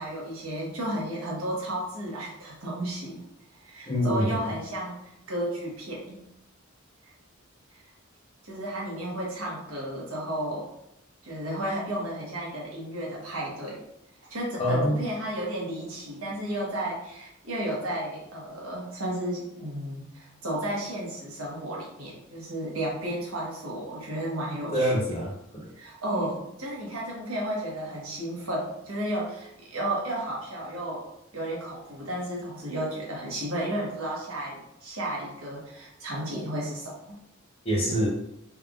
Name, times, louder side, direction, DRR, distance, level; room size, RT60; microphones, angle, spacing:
voice 1, 0.0-3.2 3.6-6.2 7.0-7.1 7.7-7.8 8.4-10.7 11.2-13.8 14.3-25.2 25.8-37.2, right 1 dB, 75° right, -3 dB, 1.2 m, -33 dB
voice 2, 3.9-4.4 14.6-15.0 24.7-25.7 37.6-38.1, equal, 30° left, -4 dB, 1.0 m, -25 dB
3.4 x 3.4 x 2.5 m, 0.80 s
head